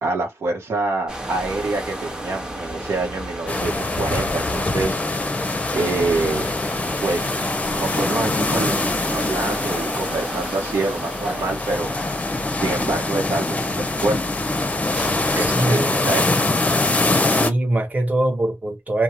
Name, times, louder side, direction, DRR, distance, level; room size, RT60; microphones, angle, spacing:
voice 1, 0.0-5.0 5.7-6.6 7.0-7.3 7.7-11.9 12.5-14.2 15.4-16.2, right 3 dB, 90° right, 1.0 m, -26 dB
sound 1, 1.1-15.6, right 1 dB, 15° right, 0.8 m, -34 dB
sound 2, 3.5-17.5, left 2 dB, 30° left, 0.6 m, -23 dB
voice 2, 15.3-15.8 17.3-19.0, right 1 dB, 35° right, 1.2 m, -22 dB
2.4 x 2.3 x 3.0 m
wide cardioid pair, 75°, 5 cm